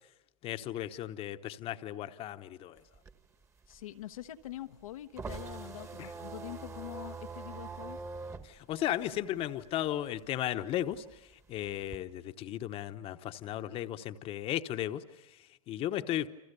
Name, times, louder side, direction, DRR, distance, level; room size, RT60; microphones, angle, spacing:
voice 1, 0.4-2.8 6.0-6.1 8.4-11.2 11.5-16.3, left 12 dB, 30° left, 9 dB, 1.0 m, -35 dB
sound 1, 2.8-9.9 10.2-12.0, right 4 dB, 15° right, 1.4 m, -44 dB
voice 2, 3.7-8.0, left 13 dB, 80° left, 7 dB, 1.1 m, -44 dB
29.0 x 26.0 x 6.8 m, 0.94 s
hypercardioid pair, 130°, 18 cm